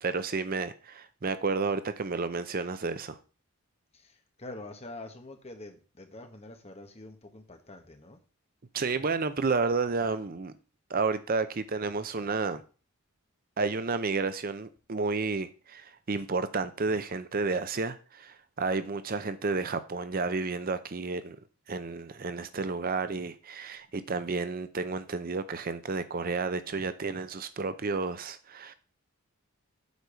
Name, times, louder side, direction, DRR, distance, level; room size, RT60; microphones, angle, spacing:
voice 1, 0.0-3.2 8.7-10.5 10.9-12.6 13.6-21.4 21.7-28.7, right 4 dB, 40° right, 0.6 m, -31 dB
voice 2, 3.9-8.2, left 2 dB, 30° left, 1.3 m, -46 dB
8.2 x 4.7 x 6.8 m
head